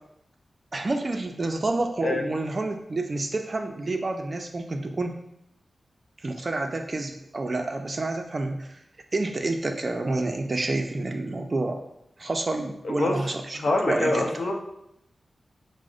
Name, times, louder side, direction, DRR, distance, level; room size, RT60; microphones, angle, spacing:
voice 1, 0.7-5.1 6.2-8.8 9.1-11.8 12.2-14.5, right 2 dB, 40° right, 4 dB, 0.4 m, -29 dB
voice 2, 13.5-14.5, left 2 dB, 60° left, 1 dB, 0.6 m, -25 dB
6.0 x 2.0 x 2.4 m, 0.80 s
wide cardioid pair, 95°, 0 cm